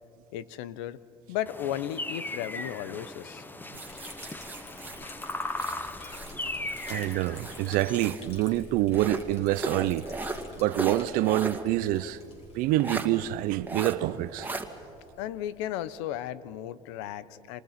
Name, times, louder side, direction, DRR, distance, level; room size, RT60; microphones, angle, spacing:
voice 1, 0.3-1.0 1.3-3.4 15.2-17.6, left 11 dB, 85° left, 0.9 m, -35 dB
sound 1, 1.5-8.1, left 2 dB, 15° left, 1.2 m, -38 dB
Liquid, 3.7-16.1, left 2 dB, 40° left, 6.8 m, -49 dB
sound 2, 3.7-6.4 6.7-8.3 8.9-11.7 12.0-12.1 12.8-13.1 13.7-14.0 14.4-14.7, right 3 dB, 10° right, 2.2 m, -37 dB
voice 2, 6.9-10.1 10.6-12.2 12.5-14.5, right 15 dB, 75° right, 0.7 m, -26 dB
28.5 x 25.5 x 5.9 m
supercardioid pair, 100°, 15 cm